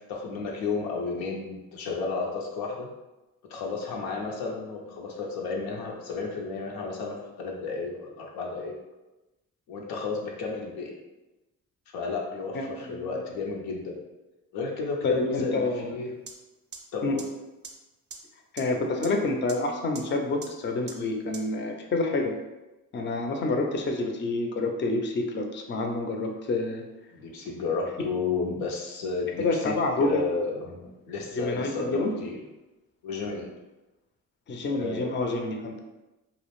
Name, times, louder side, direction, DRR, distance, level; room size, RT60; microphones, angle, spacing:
voice 1, 0.1-2.9 3.5-8.8 9.7-11.0 11.9-14.0 14.5-16.1 16.9-17.3 27.1-32.4 33.0-33.5 34.7-35.1, left 4 dB, 90° left, -1 dB, 0.6 m, -32 dB
voice 2, 12.5-13.2 15.0-15.9 17.0-17.2 18.5-22.3 22.9-26.8 29.4-30.2 31.4-32.1 34.5-35.8, left 2 dB, 30° left, 3 dB, 0.4 m, -28 dB
sound 1, 16.3-16.4 16.7-16.8 17.2-17.3 17.6-17.7 18.1-18.2 18.6-18.7 19.0-19.1 19.5-19.6 19.9-20.0 20.4-20.5 20.9-21.0 21.3-21.4, right 5 dB, 30° right, 0.4 m, -39 dB
2.4 x 2.0 x 3.0 m, 1.0 s
cardioid pair, 65°, 36 cm